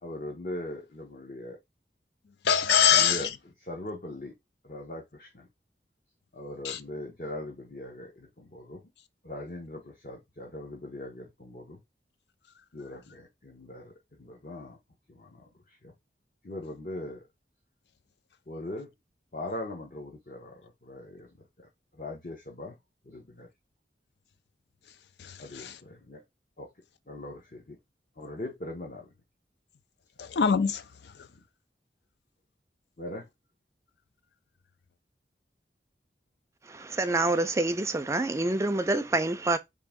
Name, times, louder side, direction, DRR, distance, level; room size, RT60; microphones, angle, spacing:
voice 1, 0.0-1.6 2.9-3.3 3.6-4.3 4.6-5.5 6.3-8.8 9.2-11.8 12.7-13.9 14.2-14.8 15.1-15.5 15.8-15.9 16.4-17.2 18.5-18.9 19.3-21.3 22.0-22.8 23.1-23.5 25.4-26.2 26.6-26.7 27.1-27.8 28.2-29.1 33.0-33.3, left 1 dB, 50° left, 0.9 m, -40 dB
voice 2, 2.4-3.3 6.6-6.8 25.2-25.8 30.2-30.8, left 7 dB, 75° left, 0.5 m, -24 dB
voice 3, 36.7-39.6, right 2 dB, 15° right, 0.4 m, -27 dB
3.7 x 2.7 x 3.5 m
head